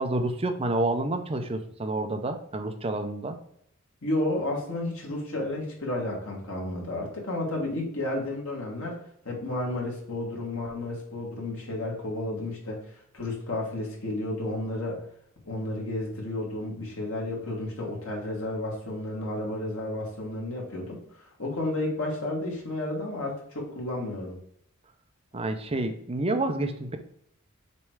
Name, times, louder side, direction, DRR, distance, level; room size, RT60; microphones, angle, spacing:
voice 1, 0.0-3.4 25.3-27.0, right 2 dB, 30° right, 7 dB, 0.6 m, -29 dB
voice 2, 4.0-9.0 9.2-12.8 13.1-15.0 15.4-24.3, left 1 dB, 90° left, -2 dB, 2.3 m, -32 dB
6.9 x 3.2 x 4.7 m, 0.70 s
head